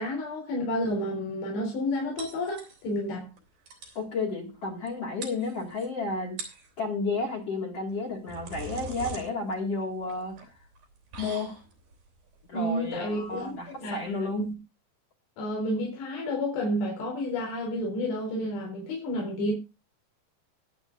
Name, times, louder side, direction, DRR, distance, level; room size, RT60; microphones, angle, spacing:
voice 1, 0.0-3.3 12.5-14.5 15.4-19.5, left 1 dB, 90° left, 5.6 m, -30 dB
sound 1, 2.2-3.1 3.4-3.5 3.7-4.0 4.9-5.0 5.2-5.9 6.3-6.7 7.9-14.5, right 4 dB, 60° right, 4.9 m, -43 dB
voice 2, 4.0-6.4 6.8-10.5 11.2-11.6 12.5-14.4, left 3 dB, 45° left, 2.7 m, -32 dB
22.0 x 8.6 x 2.5 m
omnidirectional pair, 4.8 m